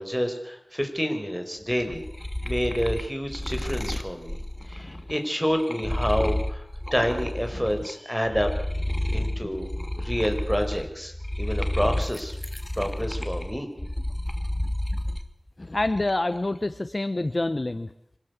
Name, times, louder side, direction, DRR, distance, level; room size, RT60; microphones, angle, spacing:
voice 1, 0.0-2.0 2.4-4.4 4.6-8.5 9.1-9.7 9.9-12.4 12.7-13.7, equal, 5° right, 6 dB, 5.0 m, -28 dB
sound 1, 1.7-7.9 8.3-15.3 15.7-16.3, left 1 dB, 15° left, 1.8 m, -31 dB
voice 2, 15.6-17.9, left 2 dB, 45° left, 11 dB, 1.0 m, -27 dB
25.5 x 17.0 x 8.2 m, 0.78 s
wide cardioid pair, 50°, 0 cm